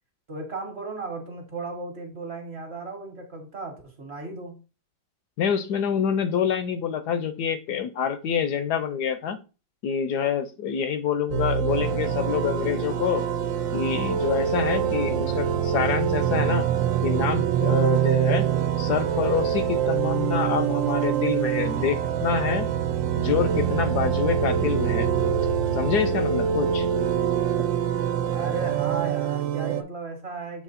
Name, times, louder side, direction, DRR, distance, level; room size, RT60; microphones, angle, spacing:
voice 1, 0.3-4.5 28.3-30.6, right 3 dB, 40° right, 3 dB, 1.3 m, -35 dB
voice 2, 5.4-9.4 9.8-13.3 13.7-16.7 17.0-18.5 18.8-22.7 23.1-25.1 25.7-26.9, left 8 dB, 70° left, 11 dB, 1.1 m, -26 dB
sound 1, 11.3-29.8, right 9 dB, 90° right, 1.4 m, -25 dB
7.5 x 3.0 x 4.1 m, 0.32 s
omnidirectional pair, 1.9 m